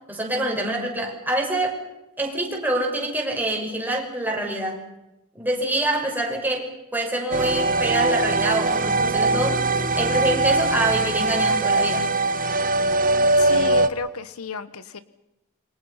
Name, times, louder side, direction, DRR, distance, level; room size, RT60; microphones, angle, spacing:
voice 1, 0.1-1.7 2.2-4.8 5.3-9.7 10.0-12.1, right 1 dB, 10° right, 0 dB, 6.0 m, -26 dB
sound 1, 7.3-13.9, right 2 dB, 40° right, 1.4 m, -21 dB
voice 2, 13.4-15.0, left 3 dB, 75° left, 14 dB, 1.0 m, -31 dB
27.5 x 24.0 x 5.8 m, 0.92 s
head